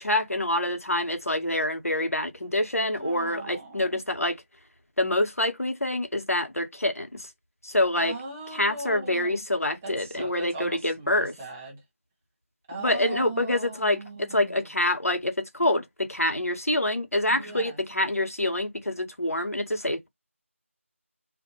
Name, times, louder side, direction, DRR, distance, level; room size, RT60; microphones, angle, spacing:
voice 1, 0.0-4.4 5.0-7.3 7.6-8.1 8.5-11.3 12.8-20.1, left 1 dB, 90° left, 1.0 m, -26 dB
voice 2, 3.0-4.0 8.0-9.4 9.8-11.8 12.7-14.7 17.3-17.8, right 2 dB, 10° right, 0.5 m, -39 dB
2.4 x 2.1 x 2.9 m
figure-of-eight pair, 165°, 8 cm